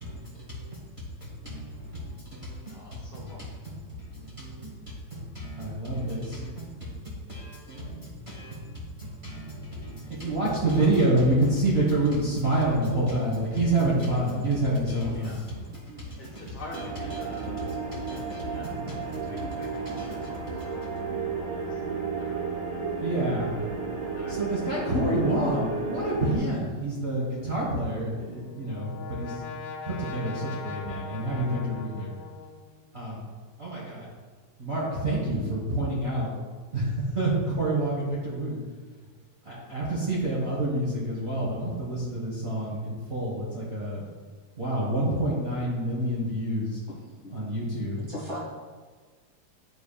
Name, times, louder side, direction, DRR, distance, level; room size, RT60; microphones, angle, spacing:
voice 1, 0.0-3.3 3.6-16.2 17.2-20.3 20.8-21.0 23.0-23.6 24.3-29.4 29.9-32.1 32.9-33.2 33.6-34.1 34.6-36.3 36.7-38.6 39.4-44.0 44.6-46.8 47.3-48.1, right 1 dB, 55° right, -6 dB, 0.7 m, -29 dB
voice 2, 2.7-3.6 15.0-15.4 16.2-17.8 18.4-21.8 22.1-22.5 24.1-24.4, left 1 dB, 65° left, -5 dB, 1.3 m, -47 dB
sound 1, 16.7-26.4, right 5 dB, 85° right, 1.0 m, -33 dB
Brass instrument, 28.1-32.9, left 5 dB, 90° left, 2.1 m, -41 dB
voice 3, 46.9-47.4 48.1-48.4, equal, 30° right, -6 dB, 1.7 m, -38 dB
10.5 x 4.1 x 2.4 m, 1.4 s
omnidirectional pair, 3.4 m